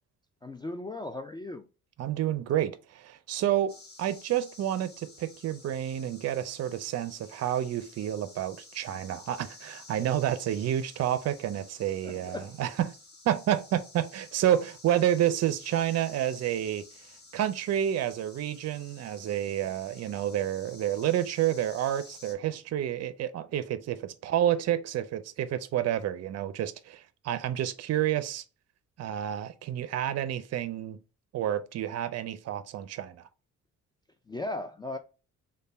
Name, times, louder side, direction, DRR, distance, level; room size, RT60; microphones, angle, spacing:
voice 1, 0.4-1.6 12.0-12.6 34.3-35.0, left 2 dB, 15° left, 0.3 m, -37 dB
voice 2, 2.0-3.7 4.0-13.0 13.2-16.8 17.3-28.4 29.0-31.0 31.3-33.3, right 11 dB, 55° right, 0.5 m, -29 dB
sound 1, 3.7-22.4, left 3 dB, 35° left, 1.4 m, -52 dB
3.2 x 2.2 x 4.1 m
cardioid pair, 90°, 30 cm